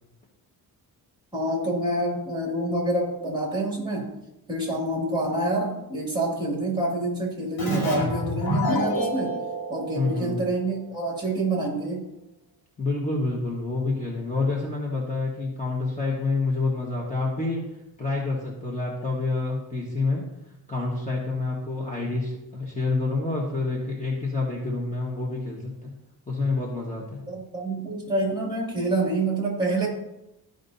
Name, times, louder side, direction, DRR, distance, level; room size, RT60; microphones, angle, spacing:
voice 1, 1.3-4.1 4.5-9.4 9.7-12.1 27.3-29.9, right 2 dB, 10° right, -2 dB, 2.2 m, -27 dB
Keyboard (musical), 7.6-11.0, left 1 dB, 65° left, 2.5 m, -28 dB
voice 2, 9.9-10.4 12.8-17.6 18.0-20.2 20.7-25.9 26.3-27.2, left 3 dB, 20° left, -4 dB, 1.3 m, -28 dB
13.5 x 5.2 x 2.7 m, 0.91 s
wide cardioid pair, 150°, 39 cm